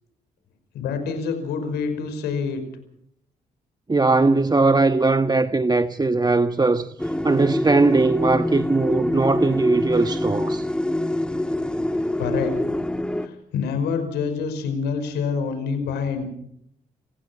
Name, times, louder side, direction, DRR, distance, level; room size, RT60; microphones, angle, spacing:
voice 1, 0.7-2.6 12.2-12.5 13.2-16.2, left 5 dB, 85° left, 5.4 m, -26 dB
voice 2, 3.9-10.7, right 3 dB, 25° right, 1.3 m, -20 dB
sound 1, 7.0-13.3, left 1 dB, 5° left, 1.8 m, -25 dB
30.0 x 16.0 x 5.9 m
supercardioid pair, 55°, 17 cm